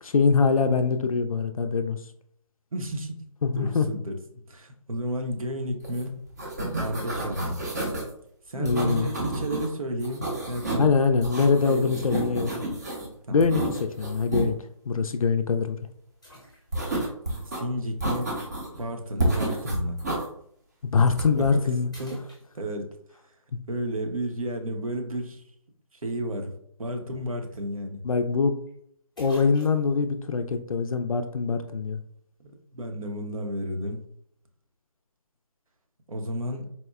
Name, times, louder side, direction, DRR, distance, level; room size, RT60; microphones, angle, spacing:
voice 1, 0.0-2.0 3.4-3.9 8.5-9.1 10.8-12.5 13.3-13.6 14.0-14.6 14.9-15.8 20.9-21.9 23.5-23.6 28.0-28.6 29.2-32.0, left 5 dB, 70° left, 7 dB, 0.4 m, -23 dB
voice 2, 2.7-3.2 3.5-4.2 4.5-6.2 6.8-7.6 8.5-10.9 11.6-12.4 13.3-13.4 17.5-18.4 18.8-20.0 21.4-21.6 22.0-22.2 22.5-22.9 23.7-25.4 25.9-26.5 26.8-28.0 32.4-34.0 36.1-36.7, right 1 dB, 70° right, 4 dB, 0.8 m, -32 dB
sound 1, 5.8-6.0 6.3-8.1 8.7-9.7 10.0-10.9 11.2-13.1 13.4-14.5 16.7-17.6 18.0-18.8 19.2-20.2 21.1-21.5, right 1 dB, 30° right, 0.6 m, -30 dB
sound 2, 13.7-14.0 14.7-14.8 16.2-17.0 18.5-18.6 20.8-21.0 21.4-21.6 21.9-23.0 27.1-27.2 27.5-27.6 28.7-28.8 29.2-30.0, left 1 dB, ahead, 0.8 m, -50 dB
4.2 x 2.1 x 2.3 m, 0.69 s
figure-of-eight pair, 160°, 18 cm